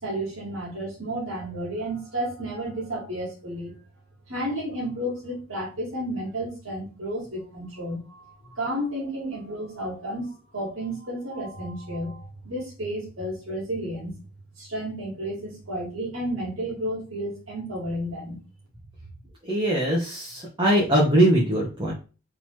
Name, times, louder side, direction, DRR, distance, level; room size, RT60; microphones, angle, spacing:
voice 1, 0.0-3.7 4.3-14.2 14.6-18.4, right 1 dB, 65° right, -4 dB, 2.1 m, -32 dB
voice 2, 19.4-21.9, right 1 dB, 20° right, -4 dB, 1.1 m, -21 dB
3.9 x 3.0 x 4.5 m, 0.33 s
head